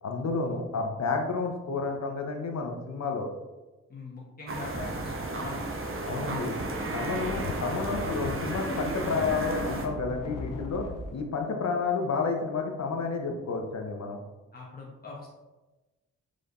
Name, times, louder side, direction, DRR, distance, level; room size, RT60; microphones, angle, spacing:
voice 1, 0.0-3.3 6.0-6.5 6.9-10.9 11.1-14.2, left 4 dB, 60° left, 3 dB, 0.9 m, -30 dB
voice 2, 3.9-5.6 14.5-15.3, left 3 dB, 30° left, -3 dB, 1.1 m, -41 dB
sound 1, 4.5-9.9, right 2 dB, 45° right, 0.9 m, -33 dB
sound 2, 7.1-11.2, left 3 dB, 85° left, 0.6 m, -38 dB
4.9 x 4.1 x 2.6 m, 1.1 s
supercardioid pair, 40°, 31 cm